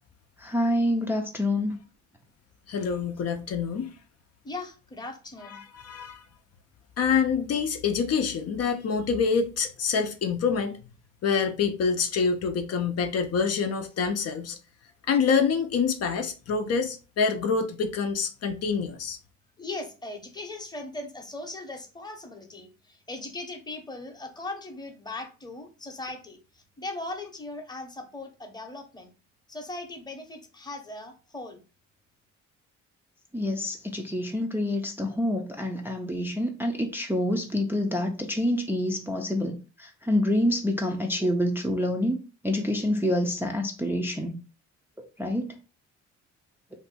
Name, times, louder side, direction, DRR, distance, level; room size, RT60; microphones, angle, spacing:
voice 1, 0.4-1.7 33.3-42.2 42.4-44.4 45.2-45.5, left 1 dB, 5° right, 0.4 m, -27 dB
voice 2, 2.7-3.9 5.5-6.2 7.0-10.8 11.2-14.6 15.1-19.2, left 5 dB, 55° left, 0.5 m, -26 dB
voice 3, 4.4-5.6 19.6-29.1 29.5-31.6, left 2 dB, 15° left, 0.8 m, -39 dB
2.6 x 2.2 x 4.0 m
cardioid pair, 90°, 30 cm